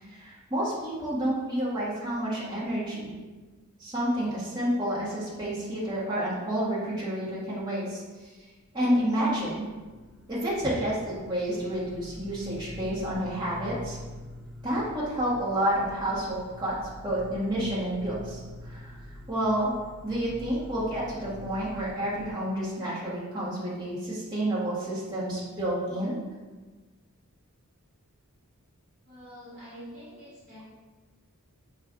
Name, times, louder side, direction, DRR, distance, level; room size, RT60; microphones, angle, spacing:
voice 1, 0.0-3.1 3.8-8.3 8.7-9.7 10.3-14.0 14.6-16.8 17.0-18.9 19.3-19.7 20.0-26.2, right 1 dB, 20° right, -9 dB, 1.2 m, -29 dB
sound 1, 8.7-22.3, left 1 dB, ahead, 0.3 m, -45 dB
voice 2, 29.0-30.6, equal, 40° right, -9 dB, 1.3 m, -46 dB
5.8 x 2.4 x 3.6 m, 1.3 s
head